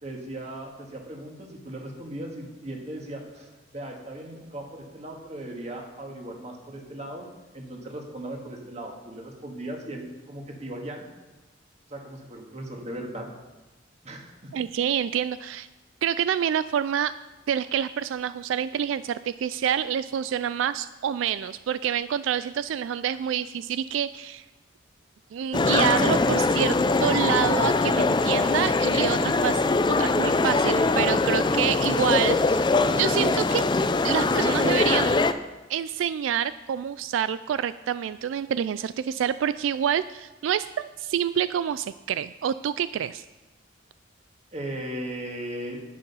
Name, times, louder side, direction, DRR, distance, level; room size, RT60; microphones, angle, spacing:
voice 1, 0.0-7.3 7.5-11.0 11.9-13.3 14.0-14.5 44.5-45.8, right 1 dB, 35° right, 1 dB, 2.0 m, -37 dB
voice 2, 14.5-15.7 16.0-17.1 17.5-24.4 25.3-26.7 27.0-29.6 29.9-32.7 33.0-33.7 34.0-35.2 35.7-43.2, right 9 dB, 85° right, 14 dB, 0.3 m, -27 dB
sound 1, 25.5-35.3, left 3 dB, 25° left, 0.4 m, -22 dB
10.5 x 9.1 x 5.6 m, 1.1 s
head